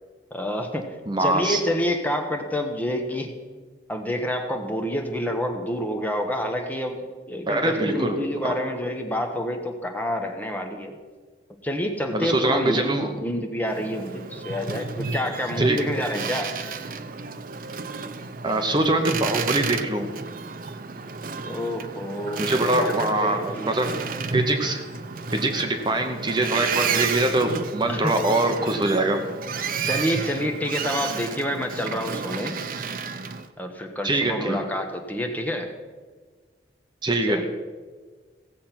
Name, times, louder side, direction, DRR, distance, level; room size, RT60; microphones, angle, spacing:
voice 1, 0.3-3.3 3.9-11.0 11.6-16.5 21.4-22.5 22.8-23.7 27.9-28.2 29.8-32.6 33.6-35.7 37.2-37.5, equal, 10° left, 4 dB, 1.0 m, -28 dB
voice 2, 1.1-1.6 7.5-8.2 8.4-8.5 12.1-13.1 15.6-15.9 18.4-20.1 22.4-23.9 24.3-24.8 25.3-29.2 34.0-34.6 37.0-37.5, right 2 dB, 25° right, 5 dB, 1.0 m, -23 dB
Boat Water vehicle, 13.7-33.5, right 5 dB, 50° right, 0.6 m, -32 dB
16.0 x 7.5 x 5.8 m, 1.4 s
head